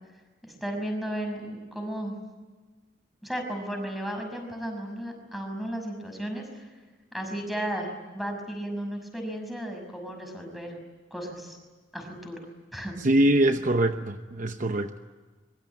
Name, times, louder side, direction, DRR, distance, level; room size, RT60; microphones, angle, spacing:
voice 1, 0.4-2.2 3.2-6.7 7.1-10.8 11.1-11.6 11.9-12.4 12.7-13.0, right 1 dB, ahead, 3 dB, 5.9 m, -34 dB
voice 2, 13.0-15.0, right 1 dB, 40° right, 7 dB, 0.9 m, -23 dB
25.0 x 23.0 x 8.7 m, 1.4 s
head